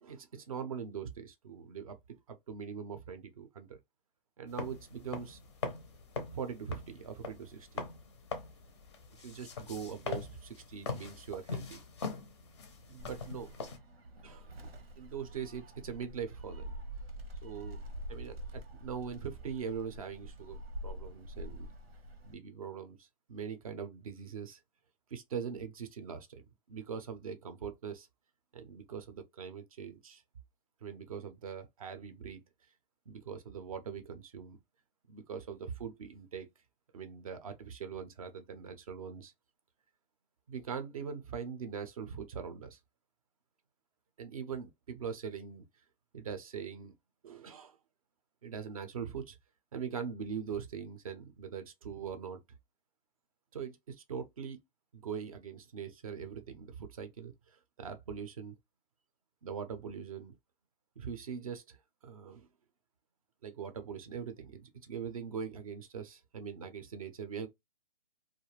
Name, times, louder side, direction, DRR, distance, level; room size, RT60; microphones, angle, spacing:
voice 1, 0.0-3.8 4.4-5.4 6.3-7.8 9.2-11.8 12.9-13.5 14.2-14.5 15.0-16.7 17.4-17.8 18.1-21.7 22.2-24.6 25.1-26.4 26.7-28.1 28.5-30.2 30.8-32.4 33.1-34.6 35.1-36.5 36.9-39.3 40.5-42.8 44.2-45.6 46.1-46.9 47.2-47.8 48.4-49.4 49.7-52.4 53.5-54.6 54.9-58.6 59.4-60.3 61.0-61.8 62.0-62.5 63.4-67.5, right 7 dB, 35° right, 0.5 m, -42 dB
sound 1, 4.5-13.8, left 4 dB, 30° left, 0.5 m, -42 dB
Gull seagull, 13.0-22.3, equal, 90° right, 0.9 m, -46 dB
2.4 x 2.1 x 3.1 m
hypercardioid pair, 155°, 30 cm